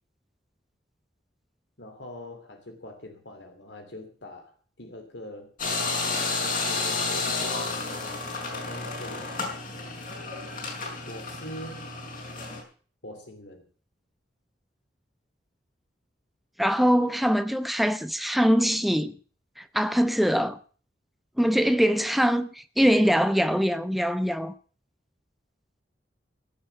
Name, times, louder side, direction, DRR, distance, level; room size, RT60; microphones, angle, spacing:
voice 1, 1.8-5.9 6.7-8.2 8.5-9.5 11.1-11.9 13.0-13.7, left 1 dB, 80° left, 2.8 m, -43 dB
sound 1, 5.6-12.6, left 3 dB, 50° left, 5.6 m, -31 dB
voice 2, 16.6-19.2 19.6-20.6 21.4-24.5, equal, ahead, 0.8 m, -23 dB
17.0 x 7.4 x 7.7 m
head